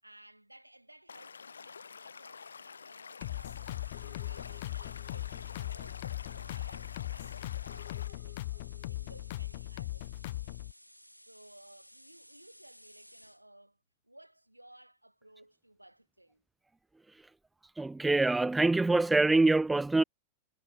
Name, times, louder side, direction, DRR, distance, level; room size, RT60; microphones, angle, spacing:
voice 1, 0.0-3.7 4.0-10.5 11.2-13.8 14.0-16.4, right 1 dB, 85° right, 6.2 m, -58 dB
Stream / Liquid, 1.1-8.1, left 5 dB, 75° left, 6.2 m, -49 dB
sound 1, 3.2-13.4, equal, 90° left, 2.5 m, -58 dB
sound 2, 3.2-10.7, left 17 dB, 55° left, 1.1 m, -39 dB
voice 2, 17.8-20.0, right 2 dB, 10° right, 0.5 m, -25 dB
figure-of-eight pair, 90°, 0 cm